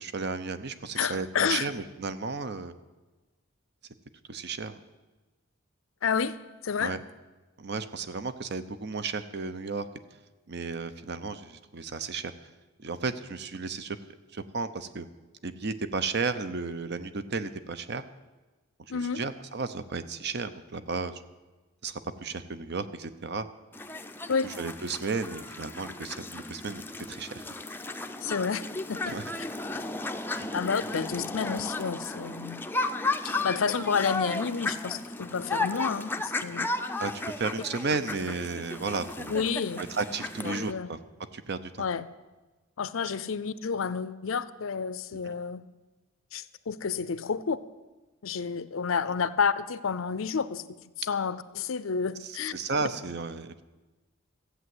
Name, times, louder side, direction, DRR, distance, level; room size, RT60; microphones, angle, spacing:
voice 1, 0.0-2.7 4.3-4.8 6.8-7.0 7.6-9.9 10.5-12.3 12.8-14.0 14.3-15.1 15.4-18.0 18.9-21.2 21.8-23.5 24.4-26.8 27.1-27.5 29.1-29.2 30.3-30.5 37.0-37.1 37.4-39.5 39.8-41.0 41.3-41.7 45.3-45.4 52.2-53.6, right 4 dB, 55° right, 11 dB, 0.7 m, -33 dB
voice 2, 1.0-1.7 6.0-6.4 6.6-6.9 18.9-19.2 24.3-24.5 28.2-28.6 28.9-29.1 29.7-29.8 30.5-32.6 33.2-36.7 39.3-39.8 40.4-40.9 41.8-42.1 42.8-45.6 46.3-47.6 48.2-50.6 51.0-52.5, left 6 dB, 85° left, 15 dB, 0.6 m, -30 dB
sound 1, 23.7-40.7, left 2 dB, 10° left, 0.5 m, -34 dB
14.0 x 8.2 x 7.8 m, 1.2 s
head